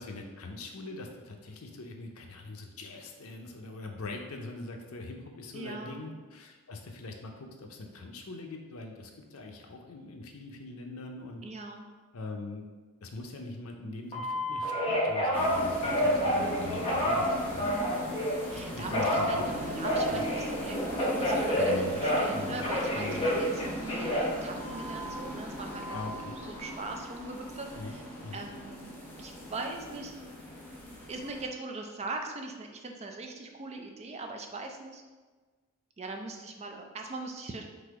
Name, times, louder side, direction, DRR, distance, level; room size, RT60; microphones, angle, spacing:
voice 1, 0.0-11.4 12.1-12.7 13.0-17.7 18.5-19.8 20.1-20.3 21.6-22.0 22.3-22.6 22.9-23.3 25.9-26.4 27.8-28.0 28.2-28.4, left 2 dB, 75° left, 3 dB, 0.6 m, -42 dB
voice 2, 5.5-6.1 11.4-11.9 17.6-18.2 18.5-19.4 19.8-24.1 24.4-26.0 26.2-28.0 28.3-30.1 31.1-35.0 36.0-37.6, right 3 dB, 30° right, 2 dB, 0.5 m, -40 dB
Telephone, 14.1-18.4 18.9-22.4 22.6-25.1 25.6-26.1, equal, 30° left, 1.1 m, -29 dB
sound 1, 15.3-31.4, equal, 10° left, 0.8 m, -39 dB
4.0 x 2.8 x 4.7 m, 1.3 s
head